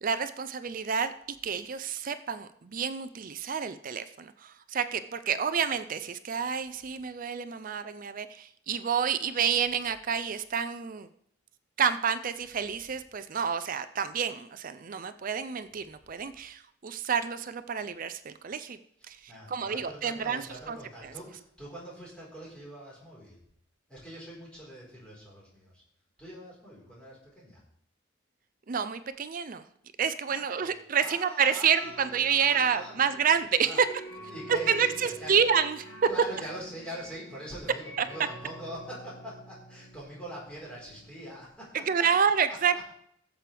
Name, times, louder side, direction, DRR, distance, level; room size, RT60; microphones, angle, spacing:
voice 1, 0.0-1.1 1.4-11.1 11.8-18.8 19.1-20.4 20.7-20.8 28.7-29.6 30.0-33.9 34.7-35.9 38.0-38.1 41.9-42.9, right 7 dB, 45° right, 11 dB, 0.5 m, -29 dB
voice 2, 19.0-23.5 23.9-25.7 26.2-27.7 30.3-30.7 31.0-33.2 33.6-33.8 34.3-35.4 36.1-42.1 42.5-42.9, equal, 5° left, -6 dB, 4.3 m, -43 dB
sound 1, 31.8-41.6, right 1 dB, 85° left, 2.0 m, -48 dB
15.5 x 7.6 x 3.4 m, 0.69 s
head